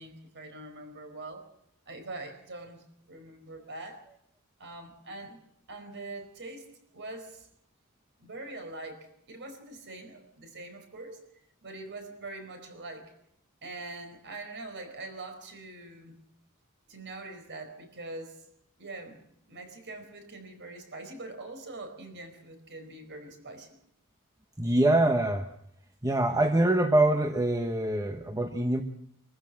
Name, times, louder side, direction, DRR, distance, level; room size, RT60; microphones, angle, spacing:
voice 1, 0.0-1.4 1.9-4.0 4.6-5.4 5.7-6.7 6.9-7.5 8.2-11.3 11.6-13.1 13.6-16.2 16.9-18.4 18.8-19.2 19.5-23.8 26.0-26.4, right 2 dB, 55° right, 7 dB, 4.7 m, -43 dB
voice 2, 24.6-25.5 26.0-28.8, right 1 dB, 15° right, 5 dB, 1.1 m, -24 dB
24.0 x 14.5 x 7.6 m, 0.75 s
head